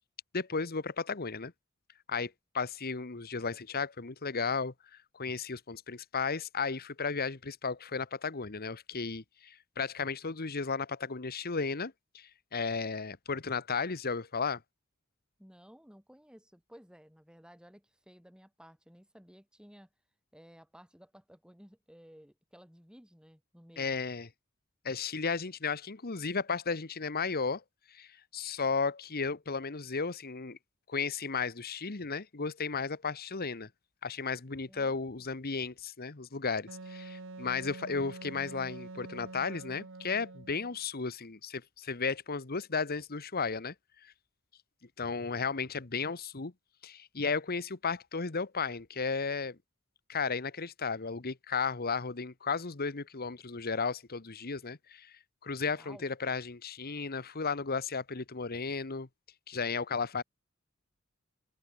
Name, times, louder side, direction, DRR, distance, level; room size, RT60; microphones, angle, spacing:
voice 1, 0.3-1.5 2.1-4.7 5.1-14.6 23.8-24.3 24.8-27.6 27.9-28.1 28.3-30.6 30.9-33.7 34.0-43.7 44.0-44.1 45.0-46.5 46.8-49.6 50.1-55.1 55.4-59.1 59.5-60.2, left 5 dB, 45° left, 1.2 m, -34 dB
voice 2, 15.4-19.9 20.3-24.0 34.7-35.4 55.7-56.1, equal, 5° right, 6.0 m, -56 dB
Wind instrument woodwind instrument, 36.7-40.8, right 3 dB, 65° right, 1.5 m, -46 dB
head